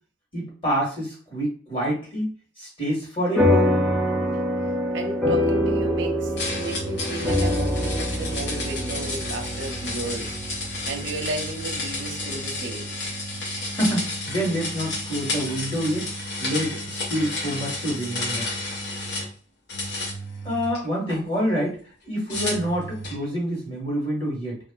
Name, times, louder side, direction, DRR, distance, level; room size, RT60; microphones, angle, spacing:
voice 1, 0.3-2.3 2.6-3.8 13.7-16.1 16.4-18.5 20.4-21.8 22.0-24.6, equal, 30° left, -3 dB, 1.3 m, -27 dB
sound 1, 3.4-12.1, left 1 dB, ahead, 0.5 m, -25 dB
voice 2, 4.9-10.3 10.6-12.9, right 3 dB, 75° right, 2 dB, 0.6 m, -34 dB
sound 2, 6.4-19.3 19.7-21.2 22.3-23.2, left 2 dB, 65° left, 0.8 m, -31 dB
3.0 x 2.4 x 2.3 m, 0.41 s
head